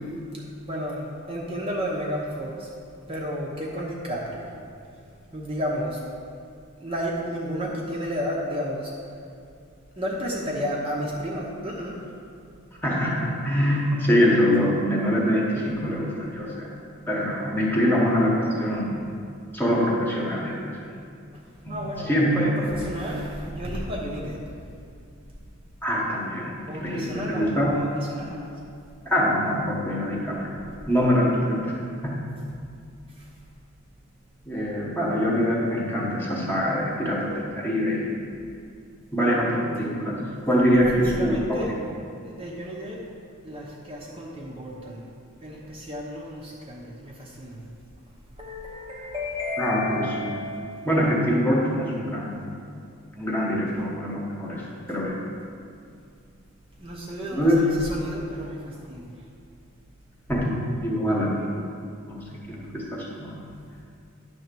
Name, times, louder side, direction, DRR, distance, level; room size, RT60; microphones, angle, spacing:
voice 1, 0.3-2.7 3.1-4.5 4.9-5.1 5.3-6.0 6.8-9.1 10.0-12.0 21.3-21.4 21.7-24.5 26.7-28.6 33.1-33.3 40.9-41.7 42.2-43.1 43.4-45.1 45.4-47.7 48.4-51.0 53.7-53.8 54.6-54.7 56.8-59.1, equal, 25° right, -4 dB, 0.9 m, -32 dB
voice 2, 12.8-16.7 17.1-19.0 19.5-20.7 21.6-22.5 25.8-27.7 29.0-30.6 30.9-31.7 32.0-32.2 34.4-38.1 39.1-41.6 49.6-50.3 50.8-52.4 53.1-54.6 54.9-55.2 57.3-57.6 60.3-61.5 62.1-63.4, equal, 10° left, -5 dB, 1.2 m, -24 dB
10.5 x 3.5 x 6.9 m, 2.4 s
head